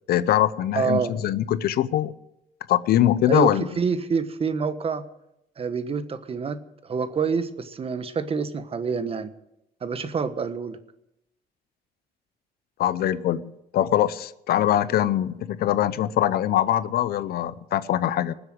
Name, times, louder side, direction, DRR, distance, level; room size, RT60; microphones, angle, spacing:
voice 1, 0.1-2.1 2.7-3.7 12.8-18.3, left 12 dB, 65° left, 16 dB, 0.8 m, -22 dB
voice 2, 0.7-1.1 3.3-5.1 5.6-9.3 9.8-10.8, right 5 dB, 35° right, 11 dB, 1.2 m, -27 dB
19.5 x 8.0 x 7.9 m, 0.84 s
cardioid pair, 110°, 17 cm